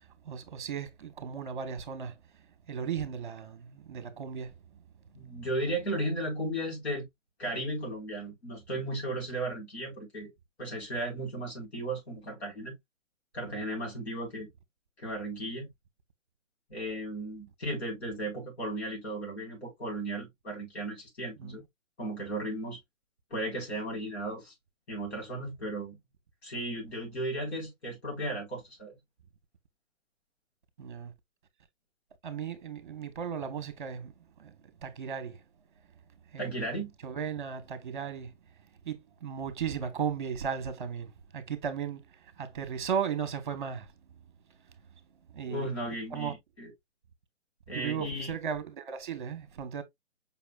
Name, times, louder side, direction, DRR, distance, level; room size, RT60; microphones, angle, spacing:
voice 1, 0.2-2.1 2.7-4.5 21.4-21.6 30.8-31.1 32.2-34.1 34.4-34.5 34.8-35.4 36.3-36.5 37.0-38.3 38.9-42.0 42.4-43.9 45.3-45.7 46.1-46.3 47.7-49.8, right 7 dB, 40° right, 1.0 m, -35 dB
voice 2, 5.1-7.1 7.4-10.3 10.6-12.7 13.3-14.5 15.0-15.7 16.7-21.6 22.0-22.8 23.3-24.5 24.9-26.0 26.4-29.0 36.4-36.9 45.5-46.7 47.7-48.4, right 1 dB, 60° left, 4.0 m, -35 dB
5.5 x 4.1 x 2.3 m
hypercardioid pair, 160°, 37 cm